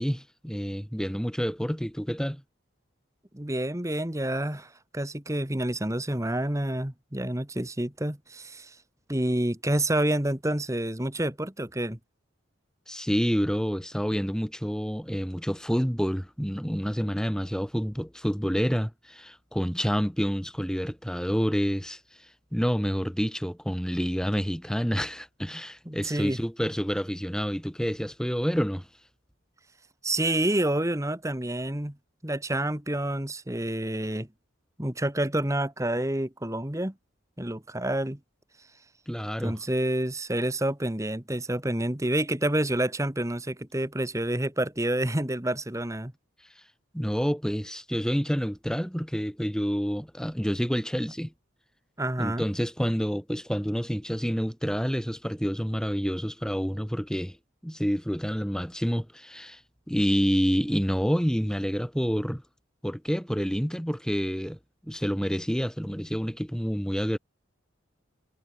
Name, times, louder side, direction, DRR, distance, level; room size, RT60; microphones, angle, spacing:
voice 1, 0.0-2.4 12.9-28.9 39.1-39.5 46.9-51.3 52.2-57.4 57.6-59.6 59.9-62.4 62.8-64.6 64.8-67.2, equal, 5° left, 7.1 m, -28 dB
voice 2, 3.3-8.7 9.1-12.0 25.8-26.4 30.0-32.0 32.2-34.3 34.8-36.9 37.4-38.2 39.4-46.1 52.0-52.4, right 1 dB, 15° right, 1.5 m, -28 dB
head